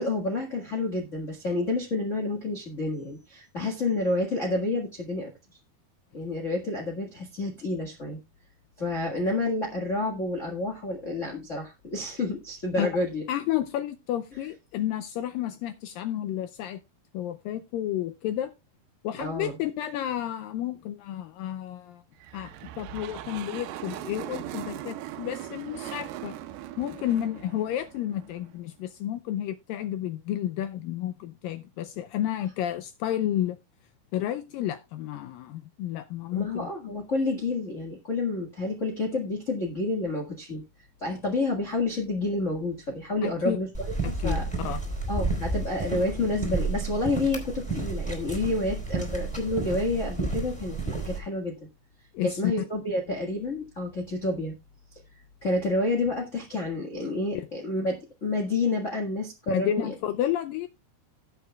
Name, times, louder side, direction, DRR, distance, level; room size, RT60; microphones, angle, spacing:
voice 1, 0.0-5.3 6.1-8.2 8.8-13.2 19.2-19.5 36.3-40.6 41.0-43.7 44.0-44.5 45.1-51.7 52.2-54.5 55.4-59.9, left 2 dB, 50° left, 0.8 m, -29 dB
voice 2, 13.3-16.8 17.1-18.5 19.0-22.0 22.3-26.4 26.8-33.6 34.1-36.7 43.2-43.6 44.0-44.8 52.1-52.5 57.3-57.5 59.5-60.7, left 12 dB, 80° left, 2.1 m, -31 dB
sound 1, 22.2-28.6, right 12 dB, 85° right, 2.9 m, -40 dB
sound 2, 43.7-51.2, right 3 dB, ahead, 3.5 m, -31 dB
18.5 x 8.1 x 2.3 m
omnidirectional pair, 4.5 m